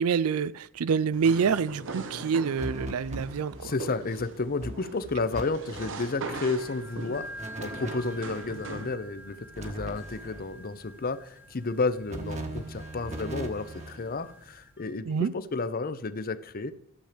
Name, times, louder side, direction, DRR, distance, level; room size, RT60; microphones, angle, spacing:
voice 1, 0.0-3.7 15.0-15.3, right 6 dB, 80° right, 0.4 m, -27 dB
sound 1, 1.1-8.9, right 3 dB, 60° right, 1.0 m, -41 dB
sound 2, 2.6-3.8 4.2-4.3 4.6-5.4 5.7-6.0 7.4-8.5 9.5-10.5 12.1-14.0, right 1 dB, 30° right, 1.4 m, -39 dB
voice 2, 3.6-15.1 15.3-16.7, left 3 dB, 45° left, 0.7 m, -32 dB
sound 3, 6.6-14.9, equal, 10° right, 1.4 m, -47 dB
12.5 x 7.3 x 5.1 m
head